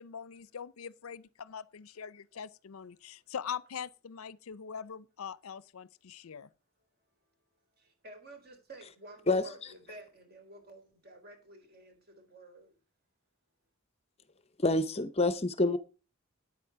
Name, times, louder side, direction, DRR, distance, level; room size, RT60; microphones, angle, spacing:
voice 1, 0.0-6.5, left 7 dB, 80° left, 0.5 m, -42 dB
voice 2, 7.8-12.7, right 1 dB, 45° right, 3.6 m, -52 dB
voice 3, 9.3-9.7 14.6-15.8, left 2 dB, 30° left, 0.6 m, -28 dB
9.6 x 8.6 x 4.7 m
head